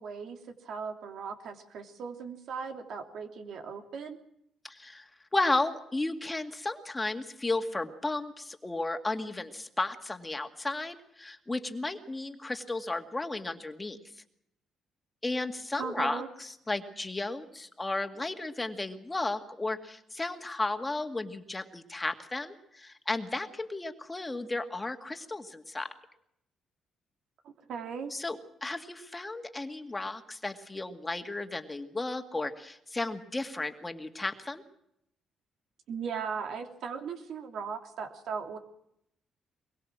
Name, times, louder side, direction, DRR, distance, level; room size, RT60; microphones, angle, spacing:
voice 1, 0.0-4.2 15.8-16.3 27.4-28.1 35.9-38.6, right 6 dB, 70° right, 5 dB, 3.1 m, -38 dB
voice 2, 4.6-14.0 15.2-25.9 28.1-34.6, left 2 dB, 15° left, 6 dB, 2.2 m, -34 dB
23.5 x 22.5 x 6.2 m, 0.77 s
cardioid pair, 90°, 0 cm